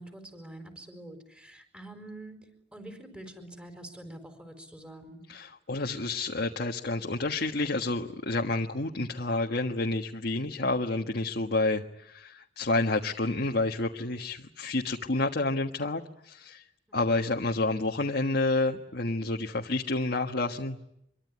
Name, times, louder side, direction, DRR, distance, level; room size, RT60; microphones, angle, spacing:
voice 1, 0.0-2.4 2.7-5.2 16.9-17.2, right 1 dB, 5° right, 6 dB, 4.7 m, -46 dB
voice 2, 5.3-16.6 16.9-20.8, left 2 dB, 60° left, 1 dB, 1.5 m, -29 dB
25.5 x 23.5 x 9.8 m, 0.79 s
head